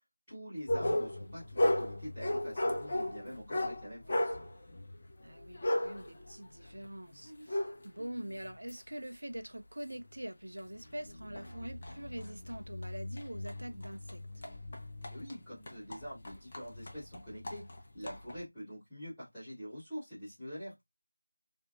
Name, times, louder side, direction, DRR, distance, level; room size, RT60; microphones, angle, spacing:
voice 1, 0.3-4.4 15.1-20.8, equal, 5° left, 1.2 m, -45 dB
sound 1, 0.7-8.8 9.4-9.5 10.1-10.2 10.6-18.4, left 1 dB, 25° left, 0.5 m, -36 dB
voice 2, 5.2-14.2, right 1 dB, 60° right, 0.5 m, -44 dB
2.5 x 2.1 x 2.5 m
figure-of-eight pair, 170°, 0 cm